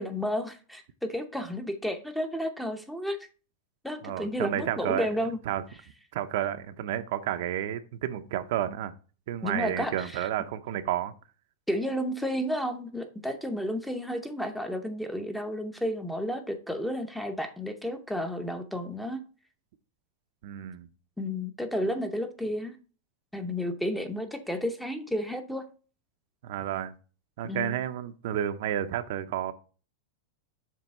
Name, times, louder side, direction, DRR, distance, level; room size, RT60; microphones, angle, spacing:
voice 1, 0.0-3.2 3.8-5.4 9.4-10.3 11.7-19.2 21.2-22.8 23.3-25.7 27.4-27.8, equal, ahead, 7 dB, 0.8 m, -32 dB
voice 2, 4.0-5.1 5.5-5.6 6.1-8.9 9.3-11.1 20.4-20.9 26.4-26.9 27.4-29.5, right 11 dB, 60° right, 9 dB, 0.6 m, -31 dB
7.5 x 3.4 x 5.4 m, 0.36 s
supercardioid pair, 150°, 0 cm